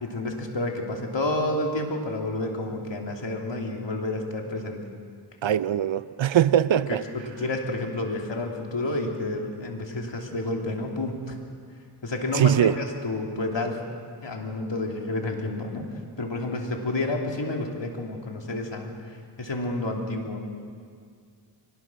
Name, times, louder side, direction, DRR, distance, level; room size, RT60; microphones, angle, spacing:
voice 1, 0.0-4.8 6.9-11.3 12.0-13.8 14.2-15.9 16.2-20.5, left 2 dB, 60° left, 3.3 m, -30 dB
voice 2, 5.4-7.0 12.3-12.8, right 10 dB, 65° right, 0.7 m, -21 dB
24.0 x 19.5 x 6.3 m
cardioid pair, 55°, 49 cm